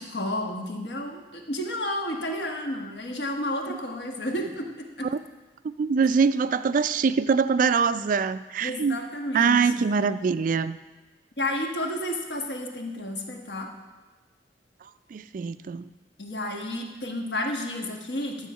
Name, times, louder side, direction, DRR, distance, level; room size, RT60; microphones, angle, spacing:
voice 1, 0.0-5.1 8.6-9.9 11.4-13.7 16.2-18.5, left 1 dB, 65° left, 2 dB, 1.4 m, -31 dB
voice 2, 5.8-9.0 9.3-10.8 15.1-15.9, right 5 dB, 45° right, 14 dB, 0.3 m, -23 dB
11.5 x 7.2 x 5.6 m, 1.2 s
head